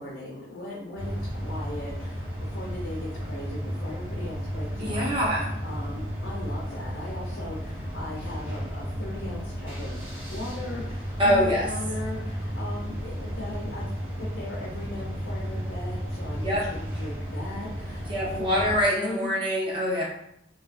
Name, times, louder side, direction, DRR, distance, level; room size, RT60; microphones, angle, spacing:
voice 1, 0.0-10.0 10.3-13.9 14.2-18.6 19.0-19.3, left 1 dB, 75° left, -4 dB, 0.5 m, -38 dB
sound 1, 1.0-18.8, equal, 15° right, 0.9 m, -33 dB
voice 2, 4.8-5.5 11.2-11.7 16.4-16.6 18.1-20.1, equal, 30° right, -5 dB, 0.6 m, -24 dB
2.6 x 2.3 x 2.3 m, 0.75 s
head